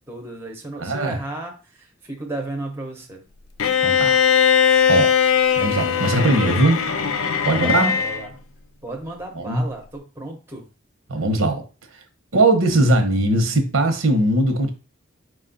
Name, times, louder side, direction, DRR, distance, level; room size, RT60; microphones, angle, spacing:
voice 1, 0.1-3.2 7.5-8.3 8.8-10.7, right 2 dB, 10° right, 0.7 m, -33 dB
voice 2, 0.8-1.2 3.8-4.2 4.9-5.1 5.6-6.8 7.4-7.9 9.3-9.6 11.1-11.6 12.3-14.7, right 2 dB, 85° right, 1.0 m, -19 dB
Bowed string instrument, 3.6-8.3, left 7 dB, 90° left, 0.5 m, -19 dB
5.0 x 2.4 x 3.9 m
head